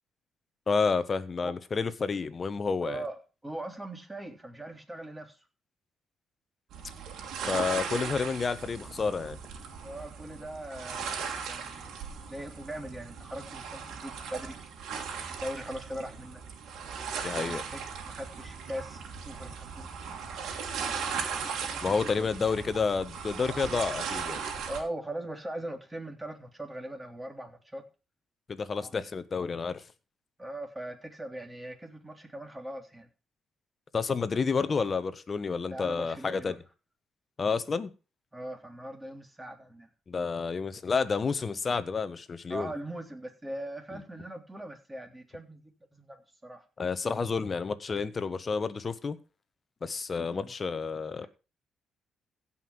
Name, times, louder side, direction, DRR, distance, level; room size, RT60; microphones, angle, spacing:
voice 1, 0.7-3.0 7.5-9.4 17.2-17.6 21.8-24.4 28.5-29.8 33.9-36.6 37.4-37.9 40.1-42.7 46.8-49.2 49.8-51.3, left 5 dB, 35° left, 1.3 m, -30 dB
voice 2, 2.8-3.2 3.4-5.4 9.8-14.6 15.4-16.4 17.3-19.9 21.6-22.0 22.2-22.3 24.7-27.8 28.8-29.0 30.4-33.1 35.7-36.6 38.3-39.9 42.5-46.2 46.4-46.6 50.2-50.5, right 1 dB, 15° right, 3.5 m, -40 dB
sound 1, 6.7-24.8, right 6 dB, 80° right, 3.0 m, -38 dB
16.0 x 5.8 x 6.1 m
cardioid pair, 90°, 0 cm